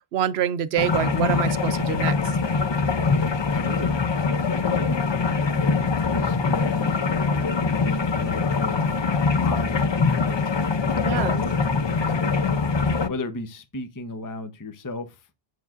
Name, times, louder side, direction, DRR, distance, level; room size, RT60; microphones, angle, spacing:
voice 1, 0.1-2.1 11.0-11.4, right 10 dB, 85° right, 0.9 m, -25 dB
sound 1, 0.8-13.1, left 4 dB, 45° left, 0.4 m, -23 dB
voice 2, 3.5-5.6 6.1-8.9 9.3-12.7 13.1-15.3, left 3 dB, 20° left, 0.7 m, -36 dB
9.4 x 6.1 x 2.4 m
omnidirectional pair, 1.0 m